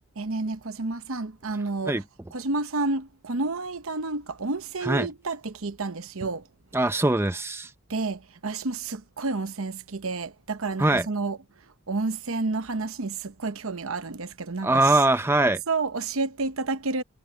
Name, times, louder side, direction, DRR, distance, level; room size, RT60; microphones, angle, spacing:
voice 1, 0.2-2.0 2.3-6.5 7.9-11.4 11.9-15.0 15.7-17.0, right 3 dB, 70° right, 0.9 m, -30 dB
voice 2, 6.7-7.7 10.8-11.1 14.6-15.6, right 2 dB, 10° right, 0.7 m, -22 dB
head